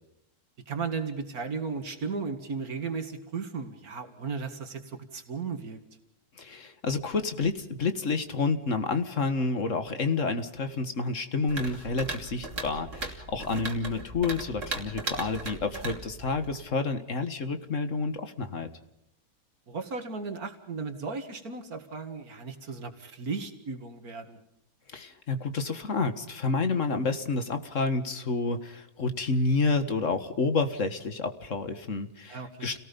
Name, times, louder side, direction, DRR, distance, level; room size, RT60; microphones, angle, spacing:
voice 1, 0.7-5.8 13.9-14.0 19.7-24.4 32.3-32.8, right 4 dB, 75° right, 7 dB, 2.4 m, -35 dB
voice 2, 6.4-18.7 24.9-32.8, left 4 dB, 55° left, 9 dB, 2.0 m, -29 dB
sound 1, 11.5-16.7, right 3 dB, 55° right, 3.3 m, -38 dB
29.5 x 18.5 x 5.4 m, 0.79 s
omnidirectional pair, 1.6 m